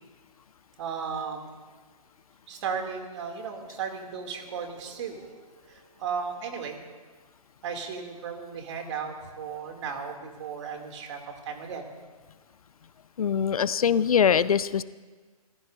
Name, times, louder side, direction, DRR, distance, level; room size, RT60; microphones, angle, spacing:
voice 1, 0.8-1.5 2.5-6.8 7.6-11.2 11.4-11.9, right 6 dB, 50° right, 3 dB, 2.7 m, -35 dB
voice 2, 13.2-14.8, left 7 dB, 70° left, 17 dB, 0.6 m, -22 dB
28.0 x 15.0 x 2.7 m, 1.4 s
figure-of-eight pair, 130°, 19 cm